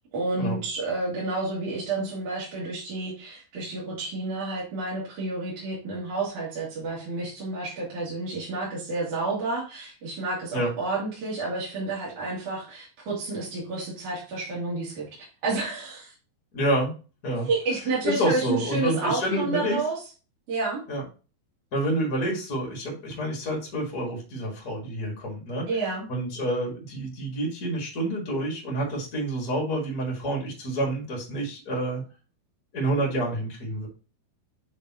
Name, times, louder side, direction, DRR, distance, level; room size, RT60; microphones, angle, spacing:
voice 1, 0.1-16.1 17.5-19.9 20.5-20.8 25.7-26.1, right 3 dB, 55° right, -7 dB, 3.3 m, -30 dB
voice 2, 16.5-16.9 17.2-17.5 18.0-19.8 20.9-21.0 21.7-25.7 26.1-32.0 32.7-33.9, right 1 dB, 40° left, 0 dB, 1.4 m, -28 dB
8.3 x 4.1 x 2.9 m, 0.33 s
omnidirectional pair, 4.6 m